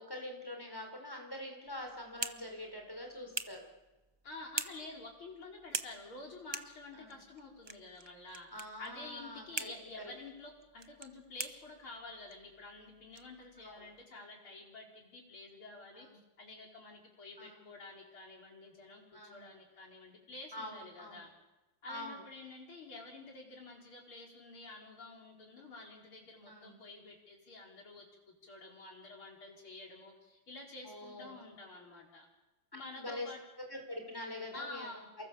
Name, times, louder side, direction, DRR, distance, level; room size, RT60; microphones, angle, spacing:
voice 1, 0.0-3.6 6.9-7.2 8.5-9.7 13.6-13.9 15.9-16.2 17.4-17.7 19.1-19.5 20.5-21.2 21.9-22.2 26.5-26.8 30.8-31.4 32.9-34.9, left 1 dB, 10° left, 2 dB, 5.3 m, -45 dB
sound 1, 1.7-14.0, right 3 dB, 35° right, 0.4 m, -46 dB
voice 2, 4.2-8.5 8.8-16.1 16.4-21.3 21.8-32.3 32.7-33.4 34.5-35.1, left 2 dB, 85° left, -1 dB, 5.8 m, -50 dB
29.0 x 23.5 x 7.2 m, 1.1 s
omnidirectional pair, 2.2 m